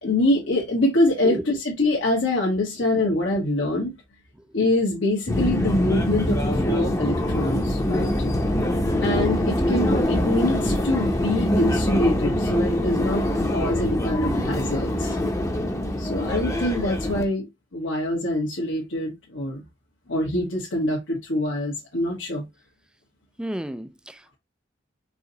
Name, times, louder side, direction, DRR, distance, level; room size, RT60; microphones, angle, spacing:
voice 1, 0.0-3.9 4.5-8.1 9.0-15.2 16.0-19.6 20.1-22.4, left 1 dB, 75° left, 1.3 m, -25 dB
Subway metro underground, 5.3-17.2, left 1 dB, 15° left, 0.8 m, -24 dB
voice 2, 23.4-24.4, right 1 dB, 5° right, 0.3 m, -33 dB
4.8 x 2.8 x 3.8 m
head